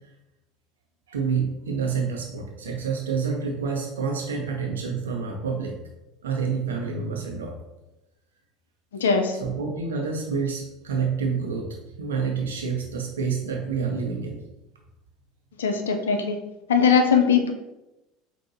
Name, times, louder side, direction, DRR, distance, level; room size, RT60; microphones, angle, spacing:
voice 1, 1.1-5.8 6.2-7.5 9.4-11.7 12.0-14.4, right 5 dB, 80° right, 0 dB, 0.8 m, -28 dB
voice 2, 9.0-9.4 15.6-16.4 16.7-17.5, left 6 dB, 75° left, 5 dB, 0.5 m, -20 dB
5.6 x 2.5 x 2.7 m, 0.96 s
figure-of-eight pair, 70°, 0 cm